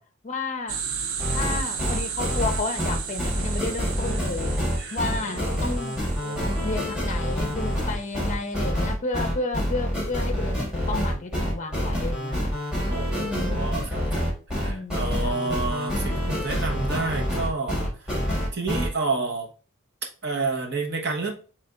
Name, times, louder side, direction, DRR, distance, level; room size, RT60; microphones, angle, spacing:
voice 1, 0.2-0.8 1.3-4.5 4.9-6.0 6.6-12.5 13.2-13.7 14.6-15.5, left 3 dB, 35° left, 0.5 m, -32 dB
sound 1, 0.7-8.4, right 7 dB, 70° right, 0.5 m, -35 dB
sound 2, 1.2-18.9, equal, 5° right, 1.6 m, -27 dB
voice 2, 4.8-5.8 6.2-6.6 12.9-18.2 18.5-19.5 20.2-21.3, right 3 dB, 50° right, 0.9 m, -30 dB
3.3 x 3.3 x 3.7 m
head